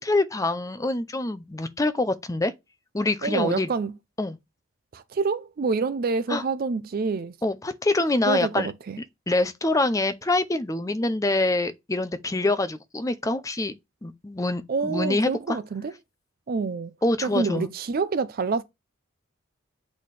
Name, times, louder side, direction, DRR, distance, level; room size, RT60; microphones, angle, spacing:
voice 1, 0.0-2.5 2.9-3.7 4.2-4.4 6.3-6.4 7.4-8.7 9.3-13.7 14.0-15.6 17.0-17.7, left 2 dB, 15° left, 0.5 m, -25 dB
voice 2, 3.2-3.9 4.9-7.3 8.3-9.0 14.7-15.9 16.5-16.9 17.2-18.6, right 4 dB, 45° right, 0.4 m, -27 dB
8.3 x 4.1 x 3.3 m
head